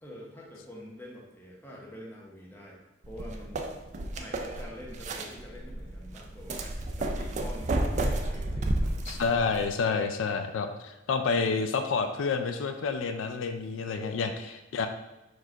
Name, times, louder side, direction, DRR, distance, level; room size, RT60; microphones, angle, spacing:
voice 1, 0.0-2.8 3.1-3.7 4.1-6.6 7.0-9.0 13.8-14.3, equal, 10° left, -3 dB, 0.8 m, -46 dB
sound 1, 3.0-9.7, right 1 dB, 40° right, 0.4 m, -32 dB
voice 2, 9.1-14.9, left 5 dB, 85° left, 7 dB, 0.4 m, -29 dB
4.6 x 2.4 x 4.4 m, 1.0 s
head